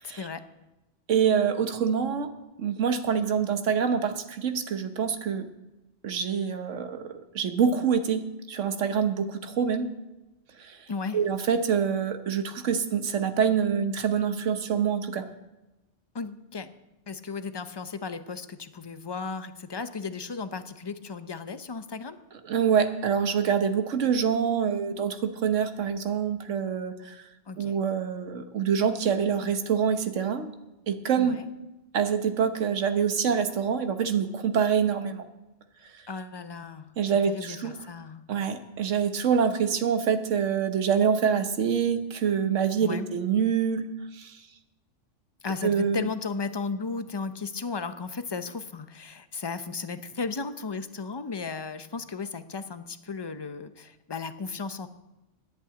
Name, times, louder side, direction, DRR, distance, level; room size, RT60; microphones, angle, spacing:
voice 1, 0.0-0.4 10.9-11.2 16.1-16.7 17.1-22.2 27.5-27.8 31.2-31.4 36.1-36.9 37.3-38.2 42.8-43.1 45.4-54.9, left 4 dB, 30° left, 11 dB, 0.5 m, -35 dB
voice 2, 1.1-2.3 2.6-5.5 6.0-8.2 8.5-9.9 10.6-10.8 11.1-15.2 22.4-27.2 27.6-30.5 30.9-31.4 31.9-35.2 37.0-37.8 38.3-43.8 44.1-44.4 45.6-46.1, right 7 dB, 90° right, 8 dB, 1.3 m, -26 dB
10.5 x 8.5 x 8.7 m, 1.0 s
omnidirectional pair, 1.2 m